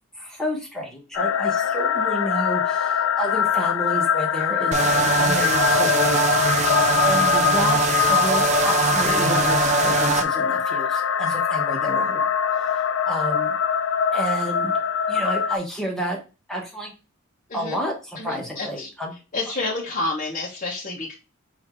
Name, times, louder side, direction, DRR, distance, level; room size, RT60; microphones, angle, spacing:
voice 1, 0.2-6.7 7.0-12.2 12.5-13.6 14.1-14.8 15.1-16.2 16.5-16.9 17.5-19.1, equal, ahead, -1 dB, 1.2 m, -30 dB
sound 1, 1.1-15.6, left 8 dB, 65° left, 0.3 m, -23 dB
sound 2, 4.7-10.2, right 5 dB, 35° right, 0.4 m, -22 dB
voice 2, 18.2-18.9 19.3-21.1, left 2 dB, 35° left, -5 dB, 1.0 m, -29 dB
4.3 x 2.7 x 4.4 m, 0.30 s
head